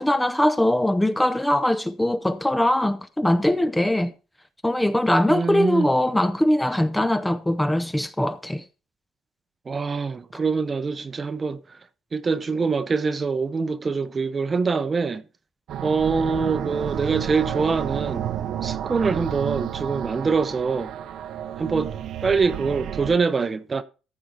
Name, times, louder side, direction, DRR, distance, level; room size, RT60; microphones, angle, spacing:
voice 1, 0.0-4.1 4.6-8.6, left 1 dB, 5° left, 0.6 m, -21 dB
voice 2, 5.3-5.9 9.7-11.6 12.1-15.2 15.8-18.3 18.6-20.9 21.6-21.9 22.2-23.8, right 4 dB, 25° right, 0.8 m, -24 dB
sound 1, 15.7-23.2, right 10 dB, 60° right, 0.8 m, -31 dB
14.0 x 4.8 x 5.7 m
cardioid pair, 140°, 0 cm